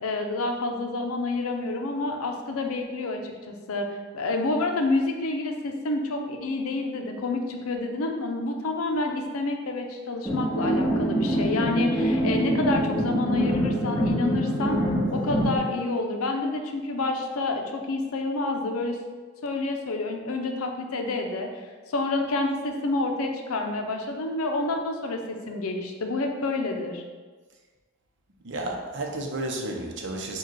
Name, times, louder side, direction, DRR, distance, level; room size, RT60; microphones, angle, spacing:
voice 1, 0.0-3.9 4.1-14.8 15.1-19.0 19.4-21.5 21.9-27.0, left 2 dB, 85° left, 4 dB, 0.6 m, -28 dB
sound 1, 10.2-15.6, equal, 5° left, 1.4 m, -25 dB
voice 2, 28.4-30.4, right 2 dB, 60° right, 1 dB, 0.7 m, -32 dB
4.8 x 2.3 x 4.6 m, 1.4 s
head